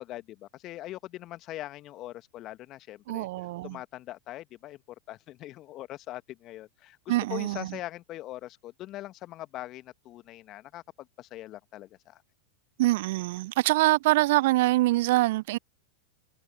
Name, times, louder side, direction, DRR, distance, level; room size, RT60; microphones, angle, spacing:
voice 1, 0.0-3.3 3.6-4.8 5.1-12.2, left 15 dB, 40° left, 1.6 m, -42 dB
voice 2, 3.1-3.8 7.1-7.8 12.8-15.6, right 18 dB, 55° right, 0.3 m, -24 dB
figure-of-eight pair, 95°, 0 cm